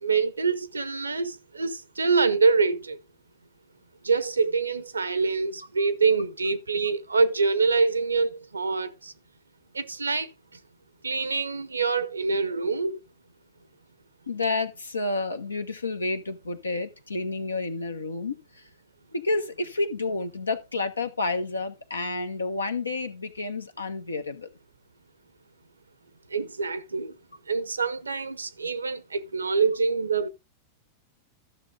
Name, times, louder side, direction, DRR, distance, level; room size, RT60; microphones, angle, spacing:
voice 1, 0.0-3.0 4.0-9.1 9.7-10.3 11.0-13.0 26.3-27.1 27.5-30.3, right 4 dB, 90° right, 0.7 m, -25 dB
voice 2, 14.3-18.7 19.1-24.5, left 3 dB, 90° left, 1.1 m, -30 dB
13.0 x 6.5 x 3.6 m
hypercardioid pair, 95°, 0 cm